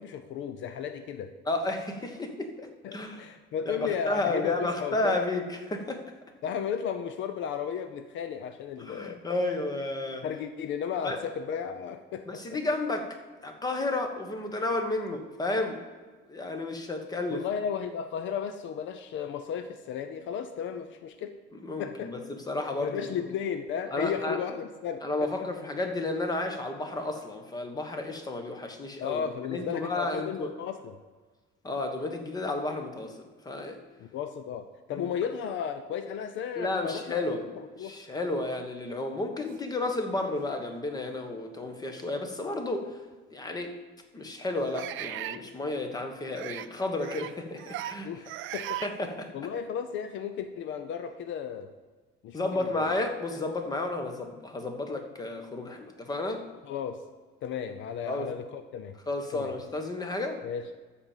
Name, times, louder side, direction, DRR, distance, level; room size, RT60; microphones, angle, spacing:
voice 1, 0.0-1.3 2.8-5.3 6.4-9.2 10.2-12.6 17.3-21.4 21.8-22.1 22.8-25.3 29.0-30.9 34.0-37.3 37.6-38.0 48.0-48.8 49.3-51.7 52.2-52.4 52.7-53.0 56.6-57.0 57.4-59.0 59.3-59.5 60.4-60.6, left 8 dB, 65° left, 9 dB, 0.7 m, -34 dB
voice 2, 1.5-3.2 3.6-6.0 8.8-10.2 11.0-11.2 12.3-13.1 13.4-15.8 16.3-17.4 21.5-23.3 23.9-24.4 25.0-29.2 29.5-30.5 31.6-33.2 33.4-33.8 34.9-35.1 36.6-37.5 37.8-42.9 43.3-43.7 44.1-48.1 48.5-49.3 52.3-56.4 58.1-58.3 59.1-60.4, left 2 dB, 20° left, 5 dB, 1.3 m, -32 dB
sound 1, 39.9-40.0 40.8-40.9 42.5-42.6 44.7-45.4 46.3-46.7 47.0-47.3 47.6-48.0 48.2-48.9, right 14 dB, 75° right, 0.5 m, -37 dB
13.0 x 4.4 x 7.3 m, 1.3 s
cardioid pair, 150°, 21 cm